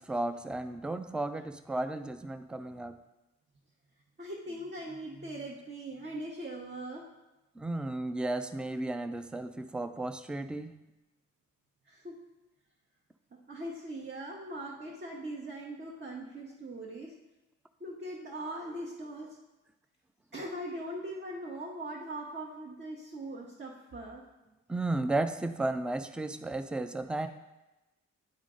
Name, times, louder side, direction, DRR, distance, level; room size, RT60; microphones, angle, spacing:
voice 1, 0.0-3.0 7.6-10.7 24.7-27.3, right 2 dB, 5° right, 10 dB, 0.4 m, -34 dB
voice 2, 4.2-7.0 11.9-12.1 13.5-17.1 17.8-19.4 20.3-24.2, right 1 dB, 35° right, -3 dB, 1.0 m, -40 dB
9.7 x 3.6 x 3.8 m, 1.0 s
cardioid pair, 65°, 32 cm